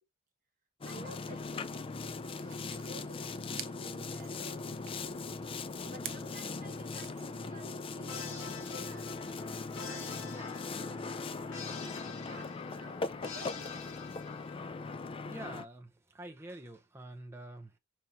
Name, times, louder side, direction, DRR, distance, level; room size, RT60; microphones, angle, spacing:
Boat Water vehicle, 0.8-15.6, left 3 dB, 25° left, 0.4 m, -40 dB
voice 1, 0.9-2.1 2.6-4.7 5.9-9.6 9.9-13.8, right 2 dB, 40° right, 1.5 m, -54 dB
sound 1, 2.2-7.3, right 11 dB, 65° right, 0.5 m, -50 dB
sound 2, 8.1-14.9, left 6 dB, 65° left, 1.0 m, -47 dB
voice 2, 14.8-17.8, right 1 dB, 10° right, 0.7 m, -47 dB
5.2 x 2.9 x 2.7 m
head